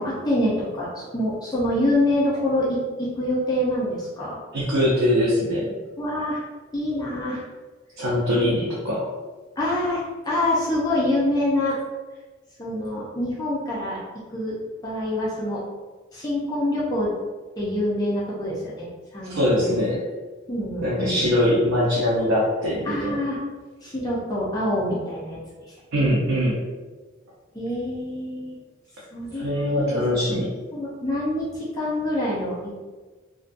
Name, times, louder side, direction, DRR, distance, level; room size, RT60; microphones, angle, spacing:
voice 1, 0.0-4.4 6.0-6.4 6.7-7.4 8.3-8.5 9.6-11.8 12.6-14.0 14.3-14.6 14.8-15.6 16.1-17.1 17.6-18.8 19.1-19.8 20.5-21.3 22.8-23.4 23.8-25.4 27.5-28.6 29.1-30.0 30.3-30.4 30.7-32.7, left 1 dB, 20° left, -7 dB, 0.5 m, -26 dB
voice 2, 4.5-5.7 8.0-9.0 19.3-20.0 20.8-23.2 25.9-26.6 29.4-30.5, left 1 dB, 85° right, -6 dB, 0.5 m, -22 dB
2.5 x 2.2 x 2.5 m, 1.3 s
head